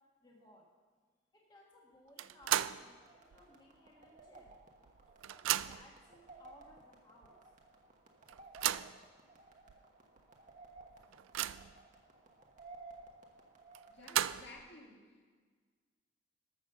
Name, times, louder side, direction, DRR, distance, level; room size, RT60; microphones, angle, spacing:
voice 1, 0.2-0.6 1.3-4.5 5.3-7.4, left 1 dB, 20° left, -3 dB, 1.6 m, -61 dB
sound 1, 2.2-2.9 3.3-3.4 4.5-4.6 4.9-6.0 6.7-6.8 7.2-7.3 8.3-9.0 9.7-9.8 10.2-10.3 10.8-11.8 13.7-14.7, right 12 dB, 85° right, 0.3 m, -35 dB
sound 2, 2.8-14.3, right 3 dB, 40° right, 1.2 m, -57 dB
voice 2, 13.9-15.3, left 2 dB, 60° left, -1 dB, 2.1 m, -55 dB
13.0 x 6.2 x 6.6 m, 1.5 s
head